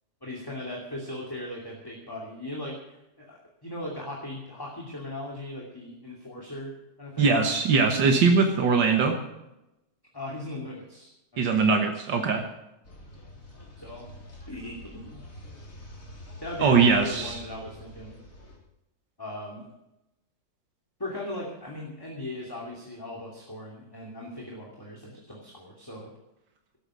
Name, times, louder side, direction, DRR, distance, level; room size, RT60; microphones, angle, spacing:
voice 1, 0.2-7.3 10.1-11.5 13.8-14.1 14.5-15.2 16.4-18.2 19.2-19.7 21.0-26.1, left 1 dB, 10° left, -2 dB, 2.6 m, -38 dB
voice 2, 7.2-9.2 11.4-12.4 16.6-17.4, right 4 dB, 80° right, 4 dB, 2.0 m, -21 dB
sound 1, 12.8-18.6, left 1 dB, 45° left, 3.9 m, -46 dB
17.5 x 9.0 x 6.3 m, 0.90 s
omnidirectional pair, 1.9 m